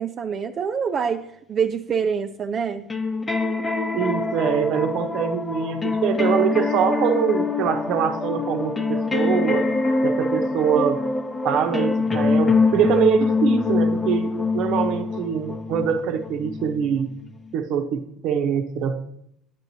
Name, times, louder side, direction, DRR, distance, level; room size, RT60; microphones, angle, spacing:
voice 1, 0.0-2.9, right 6 dB, 45° right, 5 dB, 0.5 m, -26 dB
sound 1, 2.9-17.5, left 3 dB, 25° left, 0.8 m, -24 dB
voice 2, 3.9-9.6 10.0-11.0 11.4-17.1 17.5-19.0, right 7 dB, 65° right, 6 dB, 0.9 m, -23 dB
9.1 x 7.1 x 2.8 m, 0.73 s
supercardioid pair, 80°, 0 cm